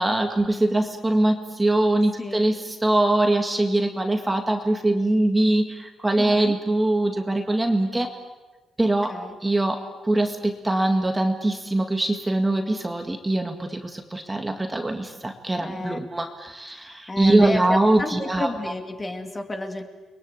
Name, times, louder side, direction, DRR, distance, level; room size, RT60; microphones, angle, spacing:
voice 1, 0.0-8.1 8.8-9.1 9.4-18.5, right 1 dB, 10° right, 4 dB, 2.0 m, -22 dB
voice 2, 6.2-6.6 9.1-9.4 15.6-16.0 16.7-19.8, left 2 dB, 20° left, 5 dB, 2.4 m, -32 dB
30.0 x 22.0 x 8.3 m, 1.2 s
cardioid pair, 140°, 0 cm